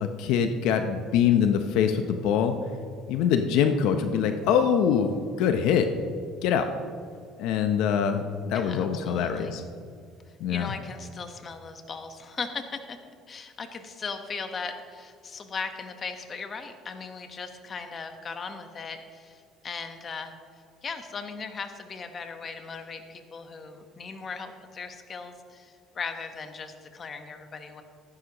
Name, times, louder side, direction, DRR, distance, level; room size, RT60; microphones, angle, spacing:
voice 1, 0.0-2.6 3.1-5.9 6.4-6.7 7.4-9.6 10.4-10.7, left 7 dB, 80° left, 7 dB, 0.7 m, -24 dB
voice 2, 8.5-9.5 10.3-20.3 20.8-27.8, left 5 dB, 35° left, 7 dB, 1.1 m, -38 dB
14.5 x 11.5 x 3.0 m, 2.2 s
cardioid pair, 105°, 0 cm